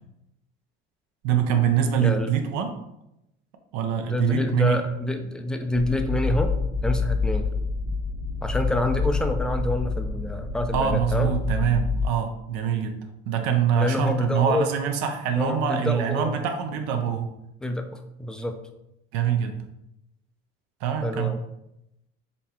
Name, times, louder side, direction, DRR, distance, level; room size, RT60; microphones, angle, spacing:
voice 1, 1.2-2.8 3.7-4.8 10.7-13.0 13.3-17.3 19.1-19.6 20.8-21.3, right 8 dB, 75° right, 6 dB, 0.6 m, -24 dB
voice 2, 2.0-2.3 4.0-6.5 6.8-7.5 8.4-11.3 13.8-14.7 15.4-16.3 17.6-18.6 21.0-21.4, left 1 dB, 5° left, 6 dB, 0.4 m, -27 dB
sound 1, 5.7-12.1, left 4 dB, 30° right, 0.7 m, -27 dB
4.1 x 3.3 x 2.8 m, 0.84 s
supercardioid pair, 85°, 29 cm